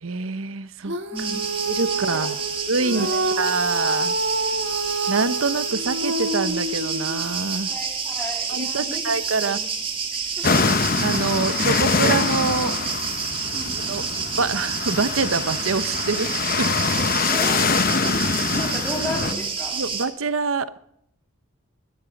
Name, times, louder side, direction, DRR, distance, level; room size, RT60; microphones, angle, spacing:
voice 1, 0.0-1.0 1.7-2.4 2.7-4.1 5.1-7.7 8.5-9.6 11.0-12.7 13.8-14.0 14.3-16.3 16.6-16.7 19.7-20.8, right 4 dB, 90° right, 14 dB, 0.9 m, -25 dB
Female singing, 0.8-7.4, right 2 dB, 60° right, 1.4 m, -27 dB
voice 2, 1.1-1.5 1.9-2.4 2.9-3.5 7.6-9.7 10.1-10.6 13.5-14.1 17.0-18.0 18.5-19.8, left 1 dB, 10° left, 0 dB, 3.5 m, -35 dB
sound 1, 1.2-20.1, right 5 dB, 25° right, 2.1 m, -29 dB
sound 2, 10.4-19.3, left 4 dB, 45° left, 1.0 m, -24 dB
20.5 x 13.0 x 5.3 m, 0.72 s
head